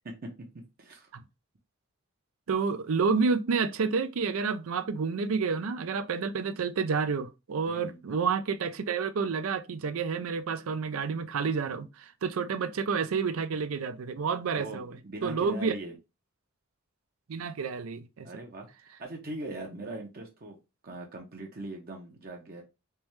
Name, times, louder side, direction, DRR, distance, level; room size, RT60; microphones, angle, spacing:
voice 1, 0.0-1.1 7.7-8.0 14.5-16.0 18.2-18.7 19.0-20.6 20.8-22.6, right 2 dB, 45° right, 0.7 m, -41 dB
voice 2, 2.5-14.9 15.2-15.7 17.3-18.3, right 5 dB, 80° right, 0.5 m, -29 dB
3.3 x 3.1 x 3.1 m
head